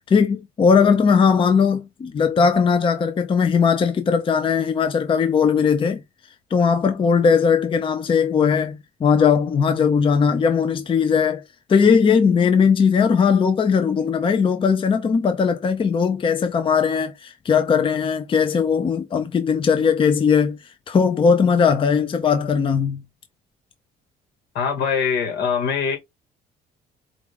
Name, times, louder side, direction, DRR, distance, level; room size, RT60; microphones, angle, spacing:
voice 1, 0.1-6.0 6.5-11.4 11.7-20.6 20.9-23.0, left 6 dB, 30° left, 0.6 m, -19 dB
voice 2, 24.6-26.0, left 6 dB, 75° left, 1.8 m, -22 dB
4.9 x 2.4 x 3.4 m
cardioid pair, 110°, 17 cm